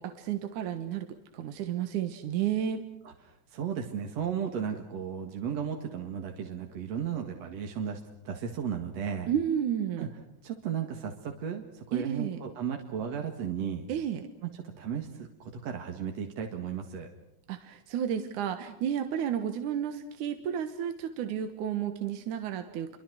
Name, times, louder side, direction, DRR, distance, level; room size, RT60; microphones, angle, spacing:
voice 1, 0.0-2.8 9.3-10.1 11.9-12.4 13.9-14.2 17.5-23.0, right 9 dB, 80° right, 7 dB, 2.8 m, -32 dB
voice 2, 3.0-9.3 10.0-10.1 10.4-13.9 14.4-17.1, right 7 dB, 60° right, 3 dB, 2.9 m, -35 dB
30.0 x 24.5 x 6.3 m, 0.81 s
omnidirectional pair, 3.5 m